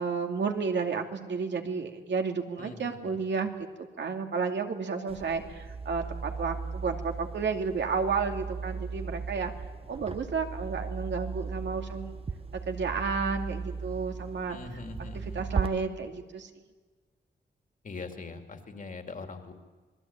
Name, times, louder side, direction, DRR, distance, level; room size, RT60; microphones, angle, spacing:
voice 1, 0.0-3.5 3.8-9.5 9.9-12.2 12.7-14.6 15.0-16.5, right 5 dB, 75° right, 4 dB, 2.6 m, -32 dB
voice 2, 2.6-3.2 14.5-15.4 17.8-19.5, left 4 dB, 45° left, 5 dB, 2.8 m, -42 dB
sound 1, 5.1-15.7, right 5 dB, 30° right, 0.9 m, -37 dB
27.0 x 21.5 x 8.9 m, 1.4 s
wide cardioid pair, 175°, 19 cm